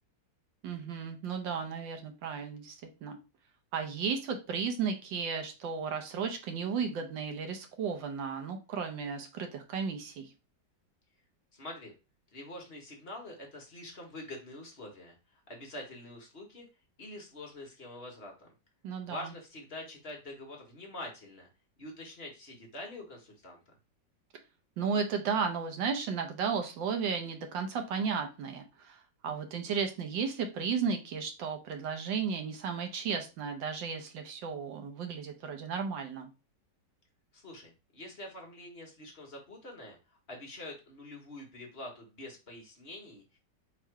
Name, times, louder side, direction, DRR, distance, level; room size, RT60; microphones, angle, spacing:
voice 1, 0.6-3.2 3.7-10.3 18.8-19.3 24.8-36.3, right 6 dB, 80° right, 5 dB, 1.5 m, -34 dB
voice 2, 11.5-11.9 12.3-16.7 17.0-18.5 19.1-21.5 21.8-23.6 37.3-40.0 40.3-43.4, left 1 dB, 40° left, 1 dB, 1.1 m, -45 dB
3.7 x 3.0 x 4.6 m, 0.29 s
omnidirectional pair, 2.0 m